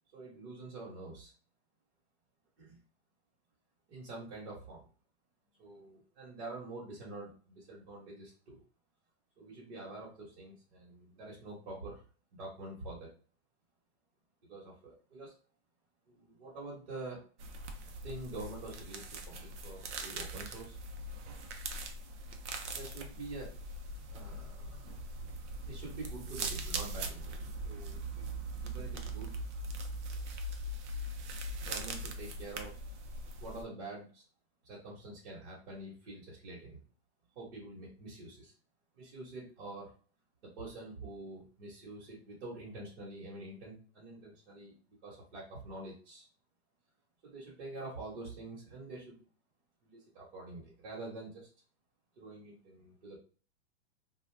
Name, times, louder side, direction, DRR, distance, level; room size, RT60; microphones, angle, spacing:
voice 1, 0.1-1.3 2.6-2.8 3.9-4.9 5.6-8.6 9.4-12.0 12.3-13.1 14.4-15.3 16.1-17.2 18.0-20.8 22.7-23.5 24.1-24.9 25.7-27.3 27.6-28.2 28.6-29.4 31.6-32.8 33.4-34.2 34.6-36.8 37.3-38.5 38.9-39.9 40.4-46.3 47.2-49.2 49.8-51.5 52.2-53.2, right 2 dB, 55° right, -6 dB, 1.3 m, -46 dB
sound 1, 17.4-33.6, right 2 dB, 90° right, 0.7 m, -41 dB
2.5 x 2.3 x 3.3 m, 0.40 s
supercardioid pair, 170°, 34 cm